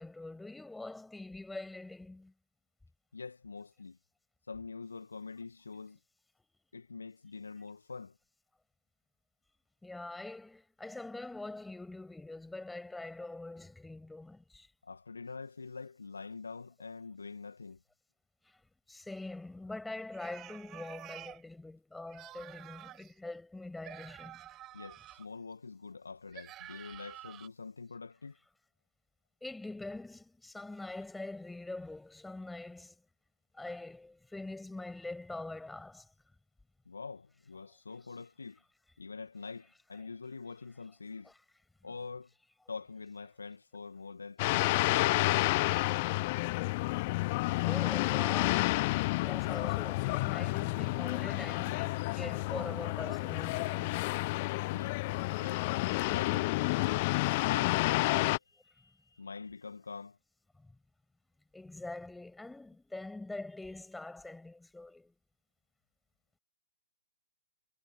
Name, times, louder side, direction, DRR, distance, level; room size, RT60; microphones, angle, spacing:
voice 1, 0.0-2.3 9.8-14.7 18.9-24.4 29.4-33.0 33.5-36.1 45.7-46.2 47.6-48.8 49.2-54.0 61.5-65.2, left 2 dB, 5° left, 6.6 m, -44 dB
voice 2, 3.1-4.0 4.5-6.0 6.7-8.2 14.8-17.8 24.7-28.4 36.8-38.6 39.0-41.3 41.8-42.3 42.7-45.4 54.7-55.0 55.4-55.6 56.1-57.0 57.4-60.2, left 4 dB, 80° left, 1.9 m, -45 dB
sound 1, 20.1-21.4 22.1-23.1 23.8-25.3 26.3-27.5, right 14 dB, 25° right, 4.8 m, -49 dB
sound 2, 44.4-58.4, left 22 dB, 40° left, 0.9 m, -30 dB
figure-of-eight pair, 115°, 0 cm